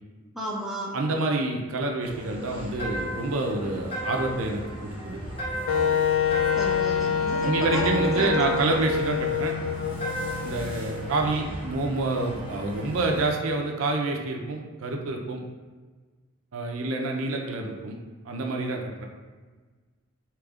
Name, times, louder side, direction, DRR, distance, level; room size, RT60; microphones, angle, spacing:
voice 1, 0.3-1.0 6.5-8.7, right 1 dB, ahead, -6 dB, 0.6 m, -33 dB
voice 2, 0.9-5.2 7.4-9.5 10.4-15.4 16.5-18.0 18.2-19.0, right 2 dB, 75° right, 2 dB, 0.5 m, -28 dB
sound 1, 2.0-13.3, equal, 25° right, 0.9 m, -39 dB
sound 2, 2.8-3.3 3.9-4.5 5.4-5.9 6.3-6.9 8.2-8.7 10.0-10.5, equal, 30° left, 1.0 m, -33 dB
Wind instrument woodwind instrument, 5.7-11.5, left 6 dB, 70° left, 0.4 m, -26 dB
4.8 x 2.9 x 2.4 m, 1.4 s
head